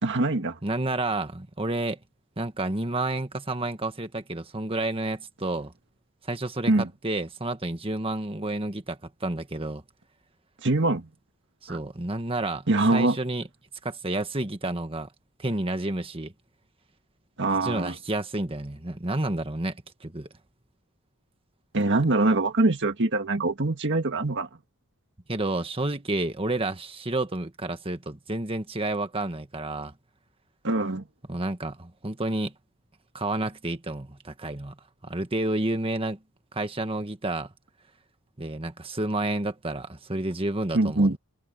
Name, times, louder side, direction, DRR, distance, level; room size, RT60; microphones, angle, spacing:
voice 1, 0.0-0.6 6.7-6.8 10.6-11.1 11.7-11.8 12.7-13.2 17.4-17.9 21.7-24.5 30.6-31.0 40.7-41.2, right 2 dB, 55° right, 1.7 m, -23 dB
voice 2, 0.6-2.0 2.4-5.7 6.2-9.8 11.6-13.5 13.8-15.1 15.4-16.3 17.6-20.3 25.3-29.9 31.3-32.5 33.1-34.8 35.0-36.2 36.5-37.5 38.4-41.2, right 2 dB, 25° right, 1.6 m, -30 dB
head